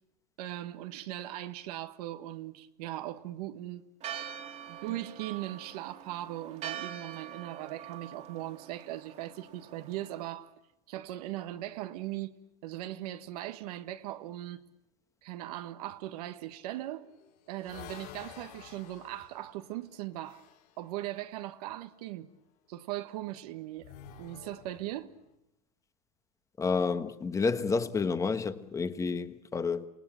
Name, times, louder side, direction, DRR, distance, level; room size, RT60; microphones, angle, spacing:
voice 1, 0.4-3.9 4.7-10.5 10.9-12.3 12.6-14.6 15.2-17.1 17.5-20.4 20.8-22.3 22.7-23.9 24.2-25.1, right 14 dB, 70° right, 1.4 m, -39 dB
Church bell, 4.0-10.3, right 9 dB, 35° right, 2.3 m, -44 dB
sound 1, 16.9-20.8 23.8-25.2, left 10 dB, 70° left, 5.9 m, -51 dB
voice 2, 26.6-29.9, left 4 dB, 15° left, 1.3 m, -30 dB
28.5 x 19.0 x 8.8 m
supercardioid pair, 130°, 20 cm